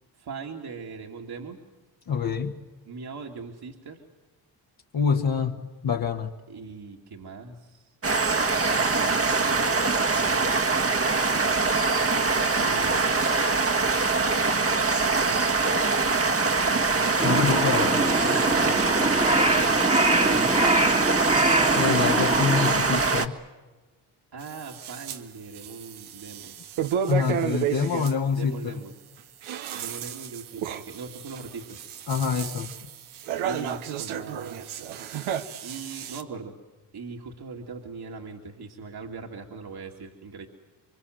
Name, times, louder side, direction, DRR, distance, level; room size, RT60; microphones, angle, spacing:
voice 1, 0.2-1.6 2.9-4.0 6.5-7.9 8.6-11.6 12.5-13.1 15.3-15.6 17.3-17.7 18.2-18.9 20.3-20.8 24.3-26.5 28.3-28.9 29.7-31.9 33.4-34.8 35.6-36.6 36.9-40.5, right 4 dB, 50° right, 2.3 m, -40 dB
voice 2, 2.1-2.6 4.9-6.3 17.2-18.0 21.7-23.3 27.1-28.7 32.1-32.9, left 6 dB, 50° left, 1.6 m, -26 dB
sound 1, 8.0-23.3, right 4 dB, 30° right, 1.5 m, -23 dB
Crow, 17.2-22.7, right 1 dB, 15° right, 1.7 m, -24 dB
sound 2, 24.4-25.2 25.5-28.1 29.2-36.2, right 9 dB, 80° right, 1.3 m, -32 dB
26.0 x 24.0 x 7.8 m
supercardioid pair, 60°, 48 cm